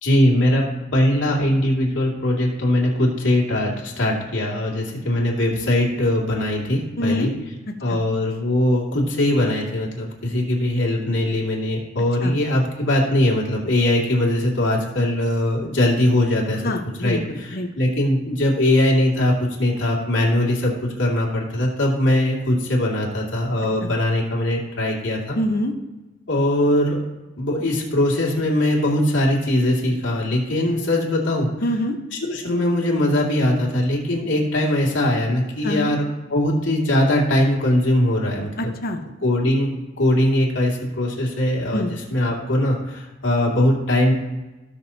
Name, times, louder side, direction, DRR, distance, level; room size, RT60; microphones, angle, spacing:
voice 1, 0.0-0.6 0.9-7.3 7.8-16.7 17.0-25.4 26.3-27.0 27.4-31.5 32.2-36.0 36.3-38.7 39.2-39.7 40.0-44.1, left 1 dB, 70° left, -2 dB, 2.6 m, -21 dB
voice 2, 7.0-7.3 12.2-12.4 16.6-17.7 23.8-23.9 25.3-25.7 31.6-32.0 35.6-36.0 38.6-39.0 41.7-41.9, left 1 dB, 55° left, 5 dB, 1.0 m, -25 dB
18.0 x 6.3 x 2.8 m, 1.1 s
head